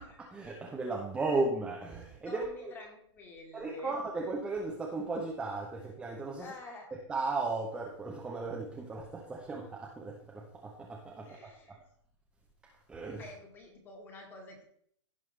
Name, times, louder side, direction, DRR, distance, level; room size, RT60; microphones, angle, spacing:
voice 1, 0.3-2.7 3.5-6.5 7.1-11.5 12.9-13.2, right 3 dB, 5° right, -2 dB, 0.7 m, -35 dB
voice 2, 2.3-4.0 6.4-6.9 11.2-11.8 13.2-14.6, left 2 dB, 15° left, 2 dB, 1.7 m, -48 dB
16.0 x 5.5 x 3.3 m, 0.66 s
hypercardioid pair, 170°, 15 cm